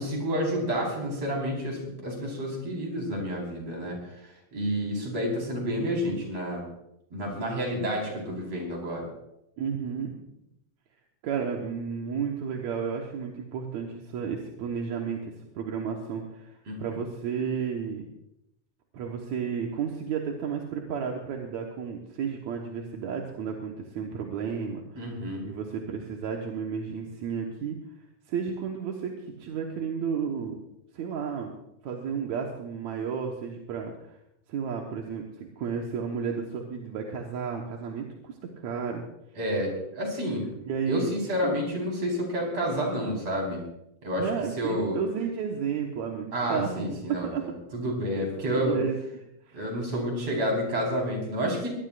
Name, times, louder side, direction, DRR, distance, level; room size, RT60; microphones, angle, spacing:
voice 1, 0.0-4.1 4.5-6.6 7.1-9.1 16.7-16.8 25.0-25.5 39.4-40.5 40.9-43.6 44.0-44.3 44.6-45.0 46.3-48.8 49.5-51.7, equal, 45° right, -1 dB, 5.7 m, -29 dB
voice 2, 9.6-10.1 11.2-18.1 18.9-25.1 25.4-27.8 28.3-29.1 29.4-30.6 30.9-31.5 31.8-33.9 34.5-39.0 40.6-41.2 41.4-41.6 44.1-47.4 48.5-49.6, right 6 dB, 60° right, 0 dB, 2.3 m, -32 dB
23.0 x 18.0 x 2.6 m, 0.83 s
omnidirectional pair, 4.1 m